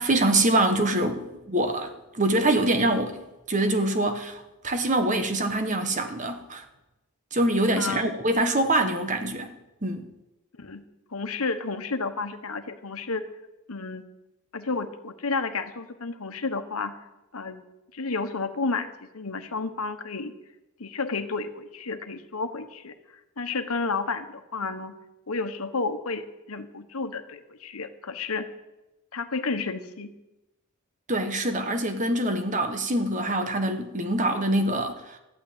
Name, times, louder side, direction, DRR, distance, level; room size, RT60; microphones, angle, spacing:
voice 1, 0.0-6.6 7.3-9.5 9.8-10.1 31.1-35.2, right 1 dB, 35° right, 7 dB, 1.2 m, -25 dB
voice 2, 7.8-8.1 10.6-10.8 11.1-13.2 13.7-14.0 14.5-16.9 17.3-17.6 17.9-20.3 20.8-22.9 23.4-24.9 25.3-28.5 29.1-30.1, left 4 dB, 80° left, 9 dB, 1.2 m, -31 dB
13.5 x 9.0 x 8.6 m, 0.99 s
head